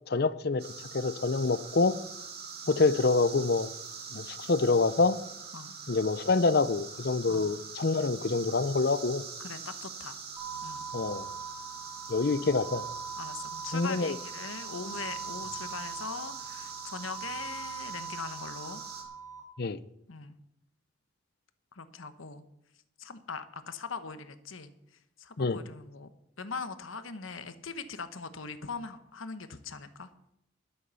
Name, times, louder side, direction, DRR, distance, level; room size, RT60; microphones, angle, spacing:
voice 1, 0.1-0.6 0.9-1.9 2.7-3.7 4.1-5.2 5.9-9.2 10.9-11.3 12.1-12.8 13.7-14.2 19.6-19.8 25.4-25.6, left 3 dB, 50° left, 0.6 m, -26 dB
sound 1, 0.6-19.0, right 5 dB, 50° right, 2.6 m, -44 dB
voice 2, 9.4-10.2 10.6-10.9 12.4-12.5 13.2-18.8 20.1-20.3 21.7-22.4 23.0-24.7 25.2-26.1 26.4-30.1, left 5 dB, 80° left, 1.1 m, -41 dB
sound 2, 10.4-19.4, right 5 dB, 10° right, 3.3 m, -42 dB
11.5 x 9.4 x 7.0 m
head